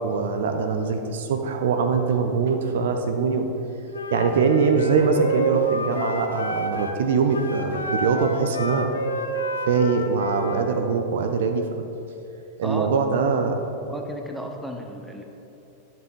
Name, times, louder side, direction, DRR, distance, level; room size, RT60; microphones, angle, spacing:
voice 1, 0.0-3.5 4.1-8.9 9.7-11.7 12.6-13.8, right 5 dB, 60° right, 5 dB, 0.6 m, -22 dB
Wind instrument woodwind instrument, 3.9-7.0 7.3-10.7, right 1 dB, 70° left, 0.7 m, -29 dB
voice 2, 13.9-15.2, right 1 dB, 5° right, 2 dB, 0.9 m, -33 dB
10.5 x 5.9 x 3.7 m, 2.8 s
figure-of-eight pair, 90°, 0 cm